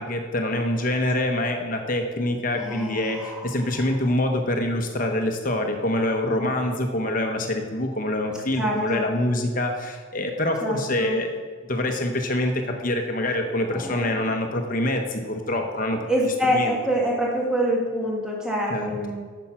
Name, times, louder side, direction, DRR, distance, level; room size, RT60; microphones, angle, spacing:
voice 1, 0.0-11.4 11.6-16.1 16.5-16.8 18.7-18.9, left 1 dB, 40° left, 4 dB, 0.9 m, -25 dB
voice 2, 2.6-3.8 8.3-9.1 10.6-11.2 13.7-14.3 16.1-19.2, equal, 5° right, -2 dB, 1.5 m, -26 dB
9.0 x 7.1 x 5.7 m, 1.5 s
head